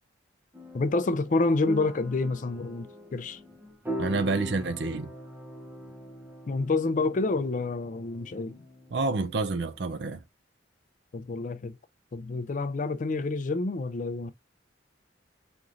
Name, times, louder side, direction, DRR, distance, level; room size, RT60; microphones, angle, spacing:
sound 1, 0.5-10.2, left 1 dB, 10° right, 0.7 m, -42 dB
voice 1, 0.7-3.4 6.5-8.6 11.1-11.8 12.1-14.3, left 3 dB, 45° left, 0.4 m, -28 dB
voice 2, 4.0-5.1 8.9-10.2, right 3 dB, 65° right, 0.5 m, -28 dB
5.2 x 3.0 x 2.5 m
head